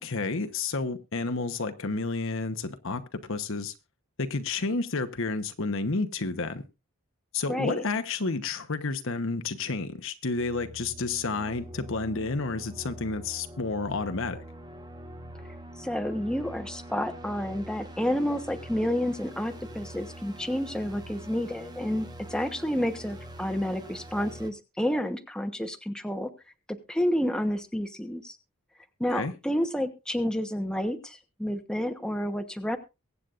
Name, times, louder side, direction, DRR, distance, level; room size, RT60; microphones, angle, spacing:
voice 1, 0.0-3.7 4.2-6.6 7.3-14.4 29.1-29.3, left 3 dB, 65° left, 1.1 m, -30 dB
voice 2, 7.5-7.8 15.8-26.3 26.7-28.4 29.0-32.8, equal, 5° left, 1.0 m, -30 dB
sound 1, 10.4-24.5, right 1 dB, 20° right, 1.2 m, -44 dB
23.0 x 8.4 x 2.5 m
head